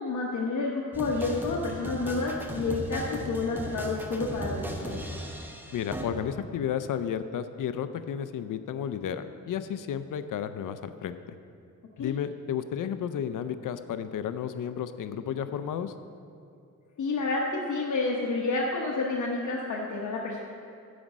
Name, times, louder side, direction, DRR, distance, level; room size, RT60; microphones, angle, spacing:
voice 1, 0.0-5.0 12.0-12.1 17.0-20.4, left 3 dB, 70° left, -2 dB, 1.0 m, -29 dB
sound 1, 0.9-6.0, equal, 5° right, 0.8 m, -37 dB
voice 2, 5.7-11.3 12.0-15.9, left 8 dB, 85° left, 11 dB, 0.5 m, -32 dB
11.0 x 5.1 x 7.3 m, 2.5 s
wide cardioid pair, 135°, 31 cm